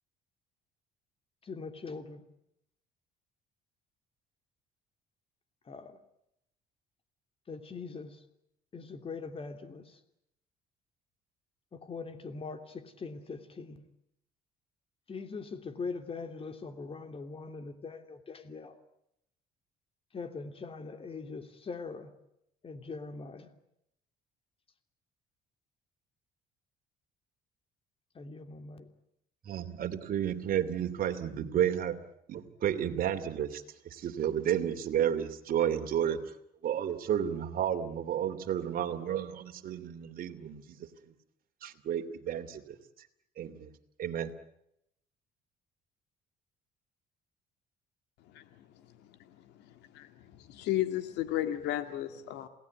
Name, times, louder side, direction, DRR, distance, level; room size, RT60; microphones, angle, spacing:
voice 1, 1.4-2.2 5.7-6.0 7.5-8.2 8.7-10.0 11.7-13.9 15.1-18.8 20.1-22.1 22.6-23.5 28.1-28.9, left 4 dB, 35° left, 8 dB, 3.0 m, -42 dB
voice 2, 29.4-32.0 32.3-36.2 36.6-40.9 41.6-42.8 43.4-43.7 44.0-44.3, right 9 dB, 60° right, 7 dB, 2.9 m, -32 dB
voice 3, 50.5-52.5, left 13 dB, 85° left, 9 dB, 2.0 m, -32 dB
28.5 x 18.5 x 9.5 m, 0.79 s
cardioid pair, 110°, 17 cm